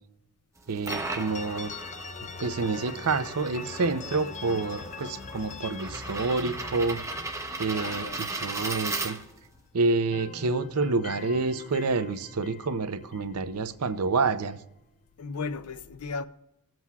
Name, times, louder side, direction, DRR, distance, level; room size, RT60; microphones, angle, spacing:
sound 1, 0.6-9.6, right 3 dB, 15° right, 0.8 m, -37 dB
voice 1, 0.7-1.7 2.4-7.0 7.6-9.2 9.7-14.6, right 3 dB, 85° right, 0.7 m, -28 dB
sound 2, 0.9-9.6 9.9-14.0, left 5 dB, 35° left, 0.4 m, -43 dB
voice 2, 7.7-8.2 15.2-16.2, left 4 dB, 85° left, 0.6 m, -35 dB
22.0 x 7.7 x 2.4 m
head